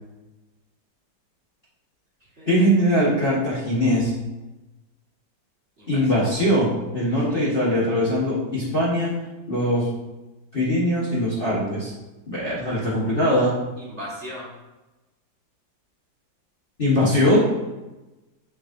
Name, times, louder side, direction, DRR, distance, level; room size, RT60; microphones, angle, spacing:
voice 1, 2.5-4.1 5.9-9.1 9.5-9.9 10.5-11.9 12.3-13.6 16.8-17.4, equal, 30° left, -7 dB, 1.5 m, -21 dB
voice 2, 5.8-6.3 7.3-7.7 13.8-14.5, equal, 35° right, -7 dB, 2.0 m, -38 dB
7.0 x 6.4 x 2.7 m, 1.1 s
omnidirectional pair, 2.0 m